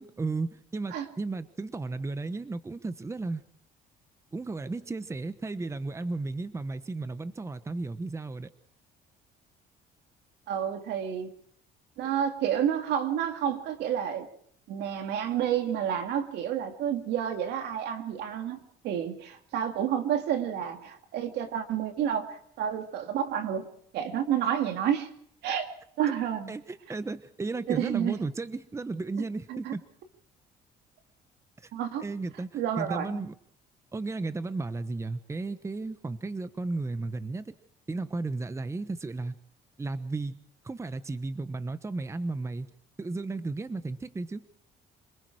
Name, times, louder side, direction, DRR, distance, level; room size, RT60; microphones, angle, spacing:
voice 1, 0.0-3.4 4.3-8.5 26.5-29.8 31.6-31.7 32.0-33.3 33.9-37.5 37.9-39.3 39.8-40.4 40.6-42.7 43.0-44.5, right 3 dB, 15° right, 12 dB, 1.1 m, -34 dB
voice 2, 10.5-11.3 12.0-14.3 14.7-23.7 23.9-25.1 25.4-25.7 26.0-26.5 27.7-28.2 29.5-29.7 31.7-32.0 32.5-33.2, right 9 dB, 80° right, 6 dB, 2.6 m, -30 dB
27.0 x 20.0 x 4.8 m, 0.66 s
cardioid pair, 110°, 17 cm